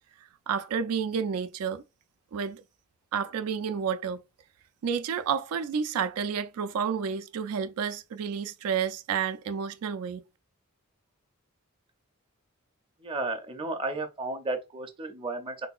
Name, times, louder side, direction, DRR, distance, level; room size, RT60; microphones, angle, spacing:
voice 1, 0.5-1.8 2.3-2.6 3.1-4.2 4.8-10.2, right 7 dB, 90° right, 0.4 m, -30 dB
voice 2, 13.0-15.7, right 2 dB, 25° right, 0.5 m, -33 dB
3.6 x 2.7 x 2.3 m
head